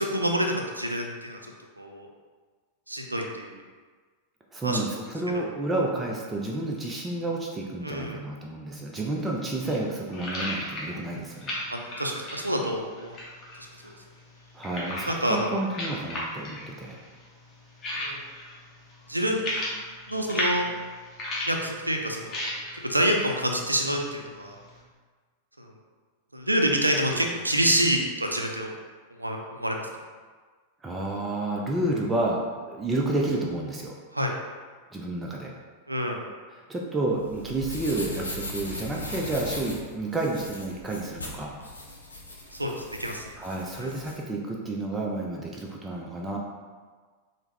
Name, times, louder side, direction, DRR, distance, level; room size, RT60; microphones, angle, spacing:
voice 1, 0.0-1.4 1.8-2.1 2.9-3.6 4.6-4.8 5.3-5.5 7.8-8.2 11.7-13.2 13.6-13.9 15.0-15.6 17.9-18.2 19.1-19.7 20.1-20.7 21.5-22.6 22.8-24.6 25.6-25.7 26.3-28.7 29.2-29.9 34.1-34.3 35.9-36.2 42.5-43.2 43.8-43.9, equal, 85° right, 2 dB, 0.3 m, -27 dB
voice 2, 4.5-11.6 14.5-17.0 30.8-33.9 34.9-35.5 36.5-41.5 43.4-46.4, right 2 dB, 15° right, -2 dB, 0.4 m, -30 dB
sound 1, 9.1-24.8, left 1 dB, 30° left, 0.7 m, -37 dB
sound 2, 37.1-44.2, left 2 dB, 80° left, 0.5 m, -39 dB
3.3 x 2.0 x 3.2 m, 1.5 s
figure-of-eight pair, 90°, 0 cm